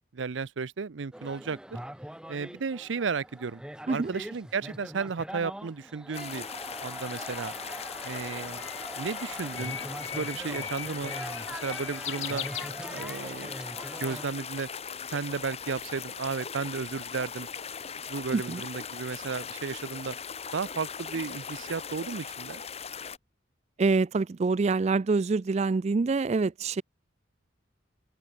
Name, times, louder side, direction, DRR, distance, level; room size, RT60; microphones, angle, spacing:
voice 1, 0.1-1.8 2.3-3.6 3.9-6.5 6.8-7.5 8.0-8.6 9.0-11.1 11.5-12.5 12.9-13.5 14.0-14.7 15.1-17.5 18.1-20.2 20.5-22.6, right 5 dB, 80° right, 0.6 m, -34 dB
sound 1, 1.1-14.2, right 1 dB, 5° right, 0.8 m, -42 dB
sound 2, 6.1-23.2, left 6 dB, 35° left, 1.3 m, -39 dB
Bird, 7.1-13.3, left 10 dB, 85° left, 1.7 m, -40 dB
voice 2, 23.8-26.8, right 4 dB, 35° right, 0.4 m, -26 dB
head